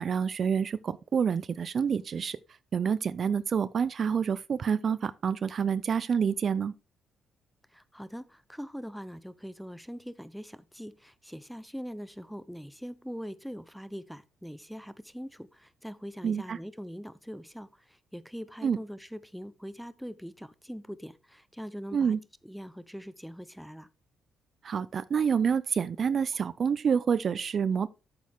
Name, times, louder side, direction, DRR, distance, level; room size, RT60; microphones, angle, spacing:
voice 1, 0.0-2.4 2.7-6.7 16.2-16.6 18.6-18.8 21.9-22.2 24.6-27.9, right 7 dB, 50° right, 0.4 m, -28 dB
voice 2, 7.7-22.2 22.4-23.9, equal, ahead, 0.7 m, -42 dB
8.6 x 7.3 x 3.5 m
cardioid pair, 90°, 0 cm